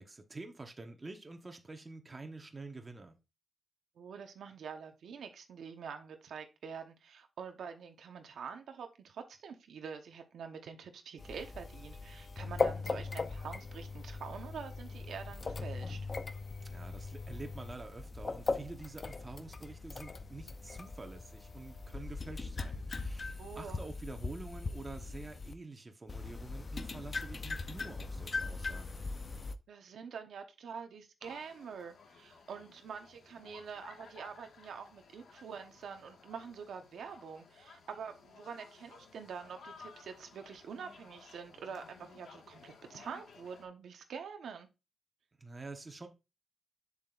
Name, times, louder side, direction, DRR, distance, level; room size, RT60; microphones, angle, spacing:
voice 1, 0.0-3.2 16.6-29.0 45.4-46.1, right 3 dB, 25° right, 1.1 m, -48 dB
voice 2, 4.0-16.0 23.4-23.8 29.7-44.7, right 6 dB, 90° right, 1.0 m, -46 dB
sound 1, 11.2-25.5 26.1-29.6, left 3 dB, 35° left, 0.5 m, -39 dB
sound 2, 31.2-43.6, left 5 dB, 90° left, 1.6 m, -57 dB
7.4 x 7.3 x 2.5 m
wide cardioid pair, 135°, 0 cm